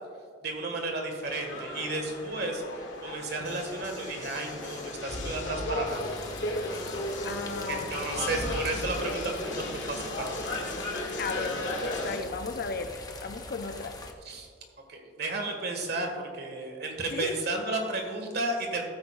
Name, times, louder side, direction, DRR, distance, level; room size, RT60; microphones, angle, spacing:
voice 1, 0.4-6.1 7.7-10.5 14.3-14.5 14.9-18.8, right 2 dB, 60° right, 3 dB, 1.7 m, -33 dB
sound 1, 1.2-12.2, left 1 dB, 85° left, 1.9 m, -35 dB
sound 2, 5.9-14.1, left 3 dB, 20° left, 0.8 m, -44 dB
voice 2, 7.2-8.5 11.2-14.0 17.1-17.4, left 4 dB, 55° left, 9 dB, 0.6 m, -36 dB
15.0 x 9.2 x 2.4 m, 2.2 s
head